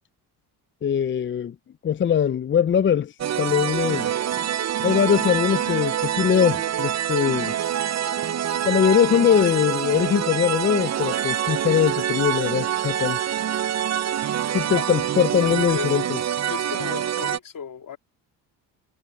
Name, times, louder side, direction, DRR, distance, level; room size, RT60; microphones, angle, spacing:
voice 1, 0.8-1.5 1.8-4.2 4.8-7.6 8.6-13.2 14.5-16.2, left 8 dB, 30° left, 0.5 m, -21 dB
sound 1, 3.2-17.4, right 10 dB, 35° right, 0.7 m, -26 dB
voice 2, 16.4-18.0, left 7 dB, 50° left, 3.3 m, -34 dB
supercardioid pair, 70°, 45 cm